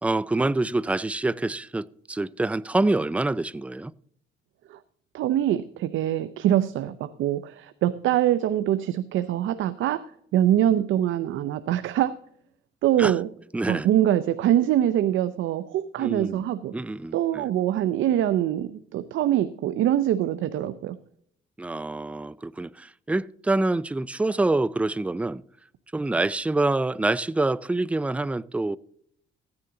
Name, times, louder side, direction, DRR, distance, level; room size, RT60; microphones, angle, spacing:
voice 1, 0.0-3.9 13.0-13.1 13.5-13.9 16.0-16.4 16.7-17.5 21.6-25.4 25.9-28.8, right 2 dB, 5° right, 0.3 m, -26 dB
voice 2, 5.1-10.1 10.3-12.1 12.8-13.3 13.7-16.7 17.1-21.0, right 12 dB, 80° right, 0.6 m, -24 dB
15.0 x 9.8 x 3.8 m
cardioid pair, 90°, 20 cm